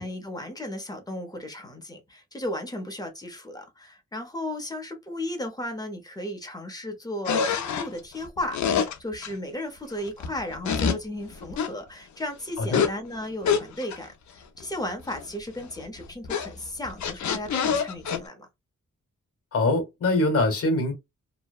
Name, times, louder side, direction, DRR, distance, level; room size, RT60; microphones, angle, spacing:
voice 1, 0.0-18.5, left 1 dB, 15° left, 0.7 m, -35 dB
sound 1, 7.2-9.3 10.1-11.0 11.3-11.7 12.6-12.9 13.4-14.0 14.6-14.7 14.9-15.4 15.6-18.2, left 7 dB, 65° left, 0.5 m, -26 dB
voice 2, 19.5-20.9, left 2 dB, 50° left, 1.0 m, -23 dB
2.7 x 2.0 x 2.3 m
wide cardioid pair, 115°, 31 cm